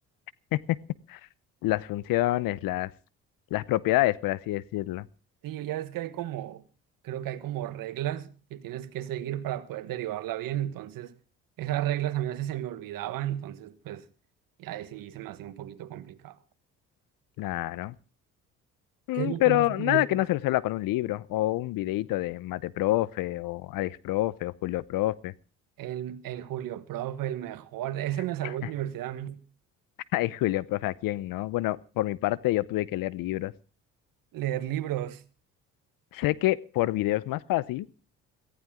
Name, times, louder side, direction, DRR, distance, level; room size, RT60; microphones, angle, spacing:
voice 1, 1.6-2.9 3.5-5.1 17.4-17.9 19.1-25.3 28.4-28.5 30.1-33.5 36.1-37.9, left 17 dB, 75° left, 0.8 m, -27 dB
voice 2, 5.4-6.6 7.0-11.1 11.6-14.0 14.6-16.4 19.1-20.1 25.8-29.4 34.3-35.2, right 12 dB, 75° right, 1.3 m, -33 dB
18.0 x 14.5 x 3.7 m
supercardioid pair, 65°, 34 cm